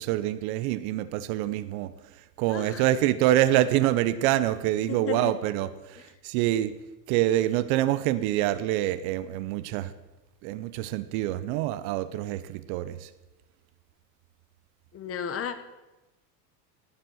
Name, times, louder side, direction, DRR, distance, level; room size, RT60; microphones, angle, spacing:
voice 1, 0.0-6.7 7.1-9.9 10.4-13.1, right 14 dB, 55° right, 15 dB, 0.8 m, -26 dB
voice 2, 2.5-2.9 4.8-5.4 14.9-15.6, left 7 dB, 30° left, 11 dB, 1.0 m, -33 dB
17.5 x 7.8 x 6.3 m, 1.1 s
supercardioid pair, 130°, 49 cm